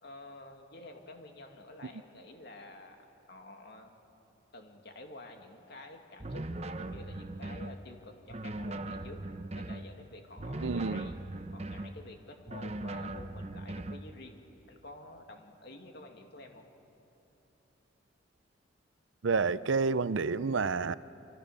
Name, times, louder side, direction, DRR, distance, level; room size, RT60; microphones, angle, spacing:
voice 1, 0.0-3.0 3.3-4.0 4.5-6.5 6.8-9.2 9.5-11.2 11.5-14.4 14.7-16.7, left 2 dB, 55° left, 3 dB, 2.4 m, -50 dB
sound 1, 6.2-7.8 8.3-9.9 10.4-12.0 12.5-14.0, right 2 dB, 30° right, 0.8 m, -39 dB
voice 2, 10.6-11.0 19.2-21.0, right 4 dB, 70° right, 16 dB, 0.6 m, -29 dB
27.5 x 26.5 x 6.9 m, 3.0 s
head